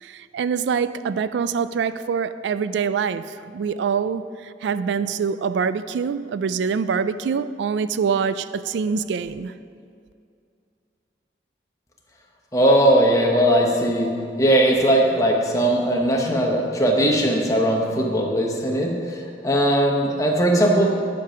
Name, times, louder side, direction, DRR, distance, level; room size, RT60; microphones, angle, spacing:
voice 1, 0.0-9.5, right 6 dB, 75° right, 0.3 m, -25 dB
voice 2, 12.5-14.1 14.4-20.9, right 1 dB, 20° left, 1.0 m, -19 dB
10.0 x 5.2 x 5.8 m
head